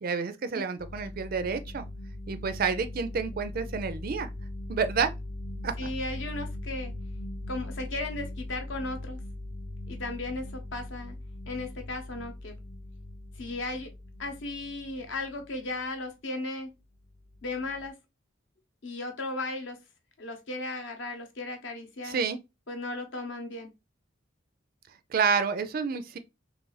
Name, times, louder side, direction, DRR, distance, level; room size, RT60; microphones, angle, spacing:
voice 1, 0.0-1.8 2.3-4.3 4.7-5.1 5.6-5.7 22.0-22.4 25.1-26.2, right 5 dB, 45° right, 0.4 m, -29 dB
sound 1, 0.8-15.9 17.0-17.9, left 1 dB, 40° left, 0.4 m, -40 dB
voice 2, 5.8-6.9 7.5-9.2 9.9-11.2 11.5-12.6 13.4-13.9 14.2-16.7 17.4-18.0 18.8-19.8 20.2-22.2 22.7-23.7, left 2 dB, 65° left, 0.8 m, -36 dB
3.0 x 2.5 x 3.9 m
head